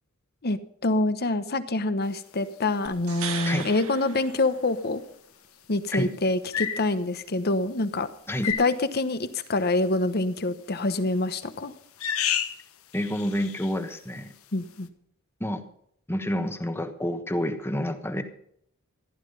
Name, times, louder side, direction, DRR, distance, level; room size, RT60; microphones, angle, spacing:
voice 1, 0.4-5.0 5.7-8.1 8.4-11.7 14.5-14.9, left 2 dB, 50° left, 11 dB, 1.1 m, -26 dB
sound 1, 2.9-5.1 8.5-8.6, right 7 dB, 85° right, 1.8 m, -37 dB
sound 2, 4.3-4.5 6.5-6.9 8.4-8.8 10.8-11.2 12.0-12.7 12.9-13.8, left 9 dB, 80° left, 1.2 m, -30 dB
voice 2, 12.9-14.3 15.4-15.6 16.1-18.2, equal, 10° left, 7 dB, 1.3 m, -29 dB
15.0 x 11.5 x 5.4 m, 0.69 s
head